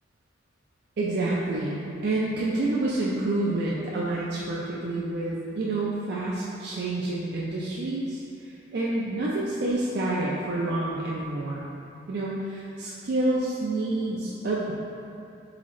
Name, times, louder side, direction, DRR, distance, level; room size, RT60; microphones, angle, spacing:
voice 1, 1.0-8.2 8.7-11.7 12.1-14.7, right 2 dB, 55° right, -6 dB, 0.4 m, -28 dB
3.9 x 3.7 x 3.1 m, 2.7 s
head